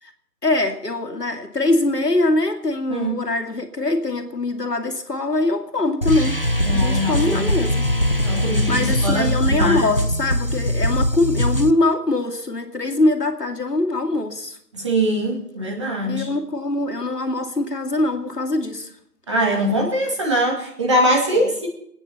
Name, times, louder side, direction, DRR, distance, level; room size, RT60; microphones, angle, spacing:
voice 1, 0.4-6.4 6.7-7.9 8.3-8.4 8.7-14.6 16.0-18.9 21.3-21.5, left 2 dB, 85° left, 2.7 m, -23 dB
voice 2, 2.9-3.2 6.6-7.5 8.2-9.9 14.7-16.3 19.3-21.7, equal, 20° right, 2.3 m, -22 dB
sound 1, 6.0-11.7, equal, 40° left, 0.6 m, -21 dB
24.5 x 9.7 x 5.7 m
figure-of-eight pair, 165°, 47 cm